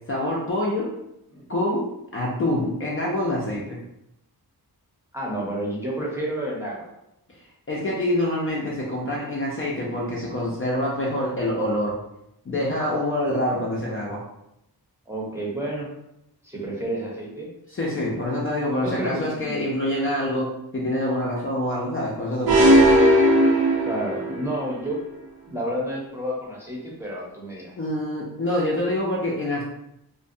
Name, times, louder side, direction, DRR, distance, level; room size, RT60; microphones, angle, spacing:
voice 1, 0.1-0.9 1.5-3.8 7.7-12.0 12.5-14.2 17.7-22.9 27.8-29.6, left 1 dB, 35° left, -4 dB, 0.5 m, -26 dB
voice 2, 5.1-6.9 15.1-15.9 16.4-17.5 18.8-19.7 23.8-25.0 25.4-27.7, right 1 dB, 5° right, -4 dB, 0.7 m, -30 dB
sound 1, 22.5-24.5, equal, 75° right, 0.6 m, -17 dB
2.5 x 2.2 x 2.6 m, 0.82 s
wide cardioid pair, 100°, 38 cm